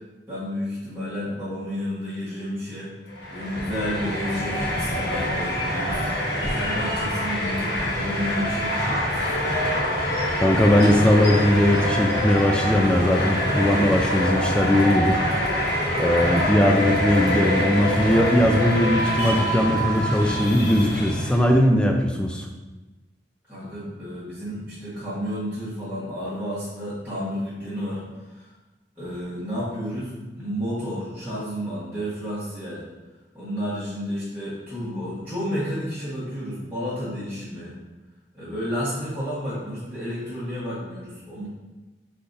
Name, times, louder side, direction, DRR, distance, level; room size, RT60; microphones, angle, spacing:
voice 1, 0.3-2.9 3.3-9.6 23.5-28.5 29.0-30.1 30.4-32.8 33.3-37.8 38.3-41.5, equal, 10° right, -13 dB, 1.2 m, -31 dB
sound 1, 3.1-21.6, equal, 70° left, 1.1 m, -25 dB
voice 2, 10.4-15.3 15.7-22.5, left 1 dB, 5° left, 2 dB, 0.3 m, -20 dB
5.6 x 3.4 x 2.6 m, 1.1 s
head